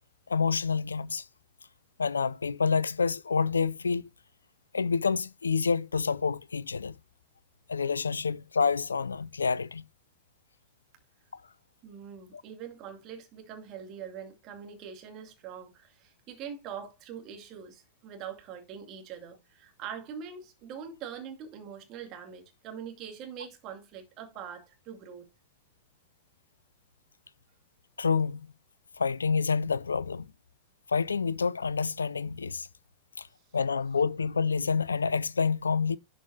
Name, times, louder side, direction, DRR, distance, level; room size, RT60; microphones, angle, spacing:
voice 1, 0.3-1.2 2.0-4.0 4.7-7.0 7.7-9.8 11.3-11.4 28.0-28.5 29.0-30.2 30.9-32.7 33.2-33.3 33.5-36.0, left 5 dB, 75° left, 0.4 m, -28 dB
voice 2, 11.8-25.3, right 8 dB, 35° right, 2.4 m, -43 dB
11.5 x 5.9 x 2.7 m
figure-of-eight pair, 90°, 0 cm